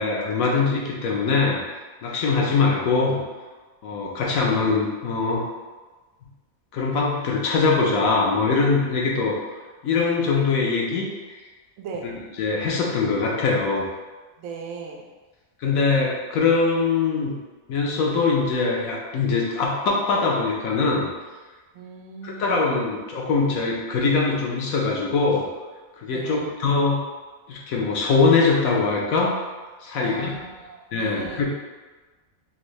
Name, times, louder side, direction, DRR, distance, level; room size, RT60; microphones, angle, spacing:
voice 1, 0.0-1.6 2.0-3.2 3.8-5.4 6.7-9.4 9.8-11.1 12.4-13.9 15.6-17.3 17.7-21.1 22.2-25.5 26.0-27.0 27.5-29.4 29.8-30.3 30.9-31.5, left 4 dB, 85° left, -2 dB, 1.2 m, -22 dB
voice 2, 11.8-12.1 14.4-15.0 21.7-22.6 26.1-26.5 29.9-31.4, right 5 dB, 80° right, 1 dB, 1.0 m, -37 dB
3.7 x 2.6 x 3.1 m, 1.3 s
omnidirectional pair, 1.4 m